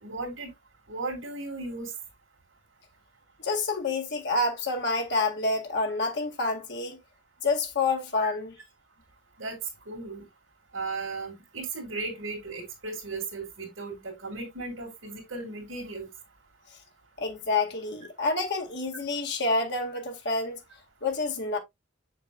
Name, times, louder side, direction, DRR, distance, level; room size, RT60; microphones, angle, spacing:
voice 1, 0.0-0.5 0.9-1.9 8.2-8.4 9.4-9.6 9.9-10.2 10.7-16.0, right 3 dB, 80° right, 2.5 m, -36 dB
voice 2, 3.4-7.0 7.4-8.6 17.2-20.6 21.0-21.6, left 3 dB, 60° left, 2.1 m, -28 dB
6.8 x 6.6 x 2.4 m
head